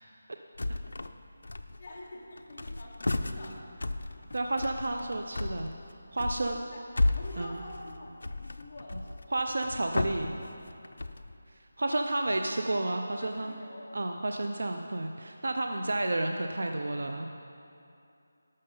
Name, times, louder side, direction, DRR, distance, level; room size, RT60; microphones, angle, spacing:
sound 1, 0.6-1.2 1.4-2.0 2.4-11.4, left 2 dB, 75° left, 0.5 m, -34 dB
voice 1, 1.8-3.6 6.4-6.8 7.1-9.3 11.9-12.5 13.2-13.8, left 1 dB, 30° left, -5 dB, 1.2 m, -47 dB
voice 2, 4.3-5.7 6.1-6.7 7.4-7.6 9.3-10.3 11.8-13.5 13.9-17.3, right 2 dB, 65° right, 4 dB, 0.6 m, -31 dB
12.0 x 6.5 x 5.4 m, 2.6 s
figure-of-eight pair, 175°, 0 cm